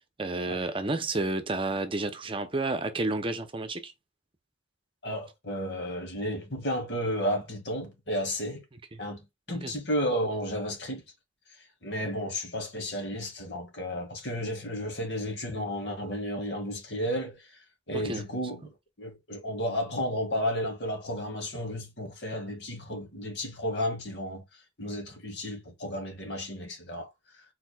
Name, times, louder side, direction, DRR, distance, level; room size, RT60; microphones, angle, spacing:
voice 1, 0.0-3.9 8.9-9.0 9.5-9.7 17.9-18.3, right 2 dB, 30° right, 0.7 m, -31 dB
voice 2, 5.0-8.6 9.0-11.0 11.8-17.6 17.9-18.7 19.0-24.4 24.8-27.1, equal, 75° left, 2.0 m, -32 dB
4.7 x 4.1 x 2.3 m
head